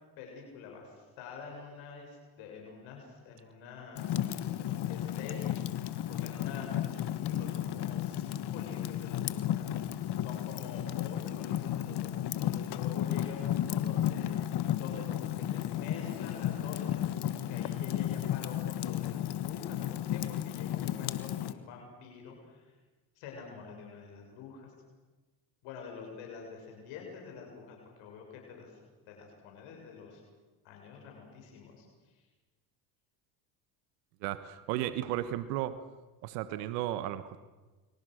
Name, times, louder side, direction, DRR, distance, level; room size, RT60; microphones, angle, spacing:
voice 1, 0.2-22.7 23.2-24.7 25.6-28.7 29.1-30.2 30.6-31.9 32.1-32.2, left 5 dB, 75° left, 1 dB, 7.3 m, -47 dB
Fire, 4.0-21.5, left 11 dB, 55° left, 1.6 m, -33 dB
voice 2, 34.2-35.8 36.2-37.4, right 13 dB, 90° right, 13 dB, 1.4 m, -34 dB
29.5 x 24.5 x 6.5 m, 1.2 s
supercardioid pair, 85°, 48 cm